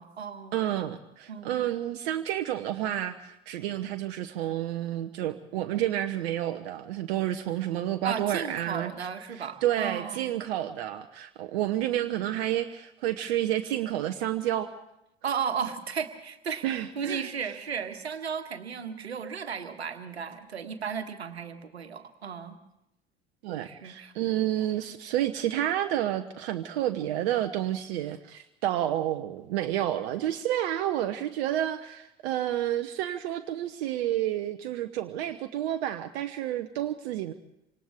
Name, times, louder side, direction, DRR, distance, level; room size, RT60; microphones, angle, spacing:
voice 1, 0.0-0.7 1.3-1.6 8.0-10.4 15.2-16.6 16.9-22.6 23.6-24.1, right 6 dB, 85° right, 8 dB, 1.5 m, -35 dB
voice 2, 0.5-8.9 9.3-14.7 16.6-17.3 23.4-37.3, right 12 dB, 65° right, 8 dB, 0.9 m, -30 dB
27.5 x 25.5 x 3.7 m, 0.85 s
figure-of-eight pair, 70°, 31 cm